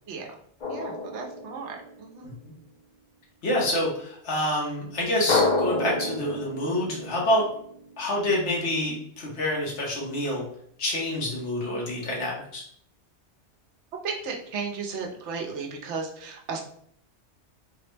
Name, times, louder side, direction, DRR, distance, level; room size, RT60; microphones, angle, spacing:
Drum, 0.6-2.2 5.3-8.0, left 3 dB, 45° left, 0.7 m, -29 dB
voice 1, 0.6-2.4 11.7-11.8 14.0-16.6, right 4 dB, 80° right, 1 dB, 0.9 m, -35 dB
voice 2, 3.4-7.4 8.0-10.4 10.8-12.6, left 1 dB, 80° left, -3 dB, 1.3 m, -27 dB
3.5 x 2.0 x 3.2 m, 0.64 s
omnidirectional pair, 1.2 m